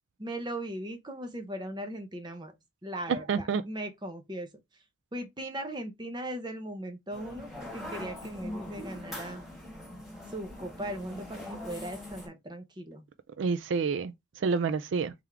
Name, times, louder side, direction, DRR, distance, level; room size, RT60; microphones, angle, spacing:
voice 1, 0.2-2.5 2.8-4.5 5.1-9.4 10.3-13.0, right 1 dB, 20° right, 0.7 m, -38 dB
voice 2, 3.3-3.6 13.4-15.1, right 5 dB, 70° right, 0.4 m, -29 dB
sound 1, 7.1-12.3, left 1 dB, ahead, 1.5 m, -42 dB
3.5 x 3.4 x 3.3 m
head